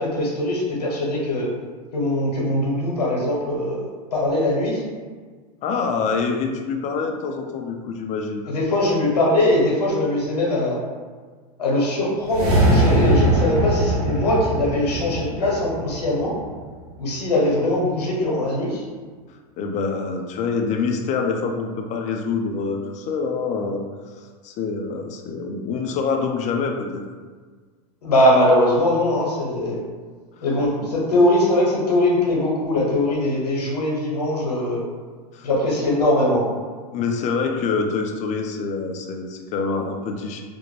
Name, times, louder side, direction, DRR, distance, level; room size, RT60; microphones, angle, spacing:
voice 1, 0.0-1.5 1.9-4.8 8.5-10.7 11.6-16.3 17.0-18.8 28.0-29.8 30.4-34.8 35.4-36.4, left 1 dB, 85° left, -4 dB, 0.9 m, -21 dB
voice 2, 5.6-8.5 19.6-23.9 24.2-27.0 30.4-30.5 30.8-30.9 35.3-35.5 36.9-40.4, left 5 dB, 35° left, 3 dB, 0.4 m, -26 dB
sound 1, 12.2-16.6, right 1 dB, 80° right, 0.8 m, -21 dB
2.4 x 2.1 x 3.1 m, 1.5 s
hypercardioid pair, 100°, 20 cm